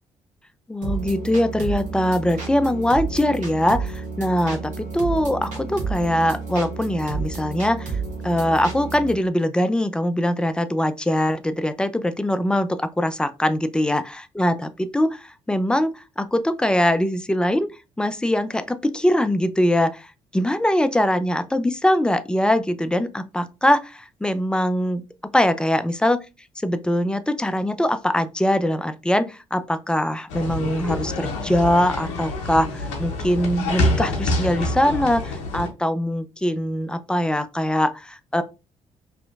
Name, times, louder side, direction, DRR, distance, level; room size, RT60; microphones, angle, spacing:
voice 1, 0.7-7.9 8.2-17.7 18.0-25.0 25.3-26.3 26.6-38.4, left 1 dB, 5° left, 0.3 m, -22 dB
sound 1, 0.8-9.2, right 4 dB, 55° right, 1.0 m, -31 dB
sound 2, 30.3-35.7, left 2 dB, 80° left, 0.6 m, -26 dB
2.6 x 2.4 x 2.3 m
figure-of-eight pair, 45°, 15 cm